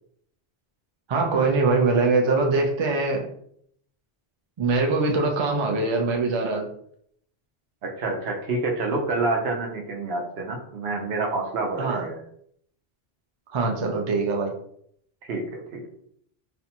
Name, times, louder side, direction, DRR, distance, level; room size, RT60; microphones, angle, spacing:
voice 1, 1.1-3.3 4.6-6.7 11.8-12.1 13.5-14.5, right 3 dB, 50° right, 1 dB, 0.3 m, -23 dB
voice 2, 7.8-12.2 15.2-15.8, right 3 dB, 80° right, 1 dB, 0.9 m, -28 dB
2.5 x 2.2 x 2.8 m, 0.67 s
omnidirectional pair, 1.0 m